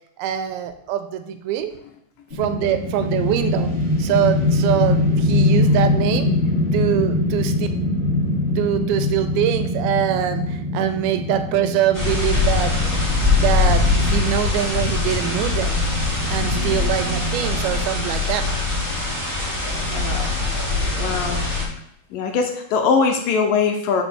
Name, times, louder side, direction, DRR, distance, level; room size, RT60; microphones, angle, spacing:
voice 1, 0.2-1.7 2.3-3.7 4.0-6.4 6.7-7.7 8.6-12.7 13.4-15.8 16.3-18.4, right 10 dB, 85° right, 8 dB, 2.5 m, -23 dB
sound 1, 2.3-14.5, left 2 dB, 25° left, 1.5 m, -22 dB
sound 2, 11.9-21.6, left 3 dB, 5° left, 2.0 m, -22 dB
voice 2, 16.4-16.8 19.9-20.5 21.0-21.4 22.1-24.0, left 5 dB, 75° left, 4 dB, 2.2 m, -22 dB
6.1 x 4.8 x 6.7 m, 0.71 s
omnidirectional pair, 4.4 m